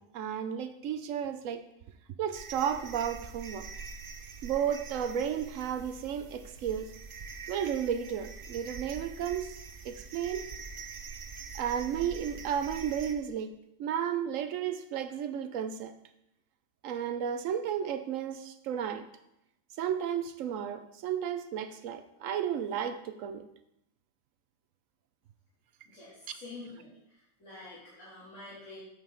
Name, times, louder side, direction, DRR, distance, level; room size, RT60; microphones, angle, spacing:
voice 1, 0.0-1.6 2.2-3.7 4.4-6.9 7.5-9.6 9.8-10.5 11.5-16.0 16.8-19.1 19.8-23.5, right 8 dB, 80° right, 10 dB, 1.0 m, -33 dB
sound 1, 2.3-13.1, right 5 dB, 50° right, 0.7 m, -44 dB
voice 2, 25.8-28.8, left 2 dB, 65° left, -10 dB, 3.4 m, -48 dB
9.1 x 7.1 x 3.8 m, 0.83 s
omnidirectional pair, 1.4 m